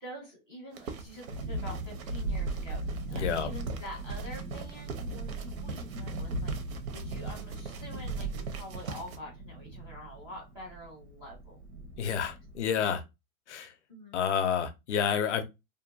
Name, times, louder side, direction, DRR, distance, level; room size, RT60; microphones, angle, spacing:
voice 1, 0.0-11.6 13.9-14.2, left 1 dB, 10° right, 0.4 m, -46 dB
sound 1, 0.7-9.2, right 4 dB, 70° right, 0.7 m, -43 dB
Thunderstorm, 1.1-12.6, right 2 dB, 85° right, 0.9 m, -38 dB
voice 2, 3.1-3.5 12.0-13.0 13.5-13.7 14.1-15.4, left 7 dB, 55° left, 0.5 m, -29 dB
2.6 x 2.1 x 2.5 m
hypercardioid pair, 145°, 43 cm